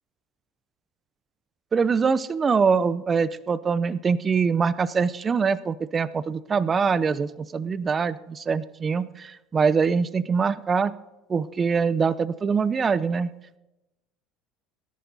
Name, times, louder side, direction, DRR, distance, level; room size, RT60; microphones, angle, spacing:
voice 1, 1.7-10.9 11.3-13.3, right 5 dB, 25° right, 17 dB, 0.6 m, -23 dB
18.0 x 11.0 x 4.0 m, 0.96 s
supercardioid pair, 105°, 0 cm